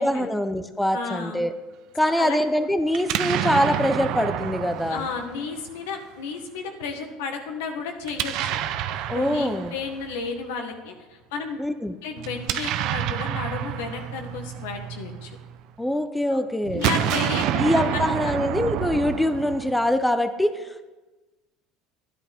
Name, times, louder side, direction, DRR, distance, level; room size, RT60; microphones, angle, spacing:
voice 1, 0.0-1.5 1.9-5.1 9.1-9.7 11.6-11.9 15.8-16.9 17.6-20.9, left 1 dB, 5° left, 9 dB, 0.7 m, -24 dB
voice 2, 0.9-1.4 2.0-2.4 4.9-8.6 9.1-11.6 12.0-15.3 16.3-16.4 16.7-18.3, left 5 dB, 85° left, 4 dB, 1.6 m, -33 dB
Explosion, 2.9-6.0 8.0-10.3 12.2-15.6 16.6-20.0, right 11 dB, 65° right, 0.7 m, -28 dB
12.0 x 10.5 x 3.6 m, 1.2 s
supercardioid pair, 110°, 0 cm